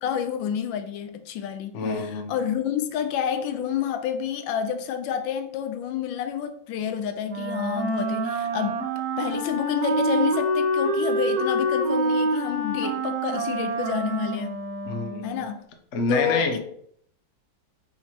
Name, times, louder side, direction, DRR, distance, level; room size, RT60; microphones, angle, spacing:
voice 1, 0.0-8.8 9.2-14.6 15.2-15.6 16.1-16.6, left 8 dB, 85° left, 1.3 m, -29 dB
voice 2, 1.7-2.3 14.9-15.4 15.9-16.6, left 3 dB, 60° left, 0.8 m, -27 dB
Wind instrument woodwind instrument, 7.3-15.5, right 1 dB, 60° right, 1.5 m, -26 dB
4.1 x 2.9 x 4.3 m
omnidirectional pair, 2.0 m